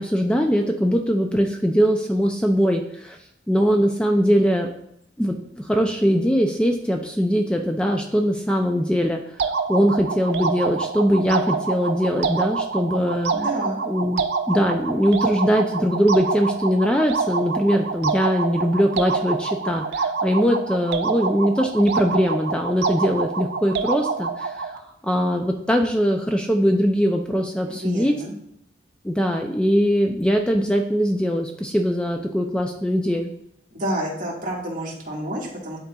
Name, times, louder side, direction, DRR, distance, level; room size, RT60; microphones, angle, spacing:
voice 1, 0.0-3.2 3.5-4.7 5.2-13.3 13.9-28.1 29.0-33.3, equal, 5° left, 2 dB, 0.3 m, -21 dB
sound 1, 9.4-24.8, right 5 dB, 75° right, 0.4 m, -26 dB
voice 2, 13.3-13.8 27.6-28.3 33.7-35.8, right 1 dB, 50° right, -4 dB, 1.7 m, -29 dB
10.5 x 3.9 x 2.3 m, 0.74 s
head